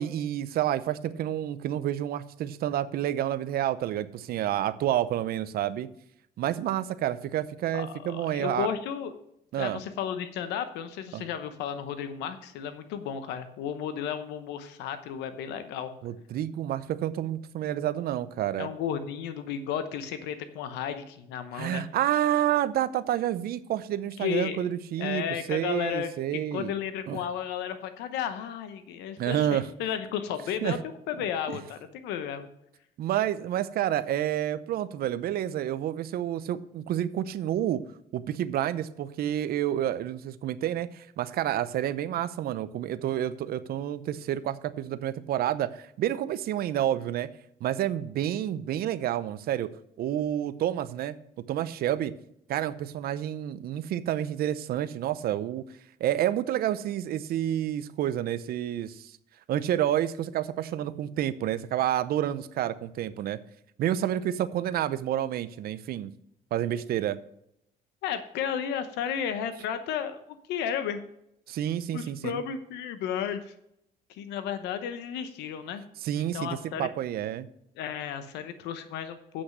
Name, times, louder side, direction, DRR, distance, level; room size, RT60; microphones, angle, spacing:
voice 1, 0.0-5.9 6.4-8.7 9.5-9.8 11.1-11.3 16.0-18.7 21.5-26.7 27.1-27.2 29.2-29.7 30.6-30.8 31.5-31.6 33.0-37.8 38.1-47.3 47.6-49.7 50.0-51.2 51.5-52.1 52.5-55.6 56.0-59.1 59.5-63.4 63.8-66.1 66.5-67.2 71.5-72.4 76.0-77.5, right 11 dB, 65° right, 14 dB, 0.7 m, -29 dB
voice 2, 7.7-9.1 9.6-15.9 18.6-21.8 24.2-24.7 25.0-30.8 31.1-32.5 68.0-71.0 71.9-73.4 74.1-75.8 76.3-76.9 77.8-79.4, left 8 dB, 90° left, 10 dB, 0.9 m, -33 dB
8.1 x 6.3 x 7.4 m, 0.76 s
cardioid pair, 110°, 17 cm